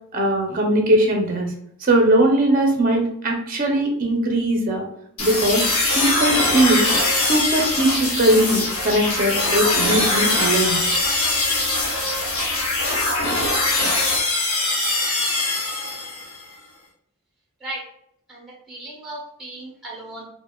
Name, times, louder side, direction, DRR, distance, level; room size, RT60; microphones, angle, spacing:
voice 1, 0.1-1.5 1.8-4.8 5.2-5.7 6.0-6.9 7.2-10.8, right 1 dB, 40° right, 2 dB, 0.5 m, -20 dB
sound 1, 5.2-16.4, left 2 dB, 75° left, 1.0 m, -22 dB
voice 2, 18.3-20.2, right 1 dB, ahead, -3 dB, 0.8 m, -36 dB
4.0 x 2.1 x 2.2 m, 0.70 s
head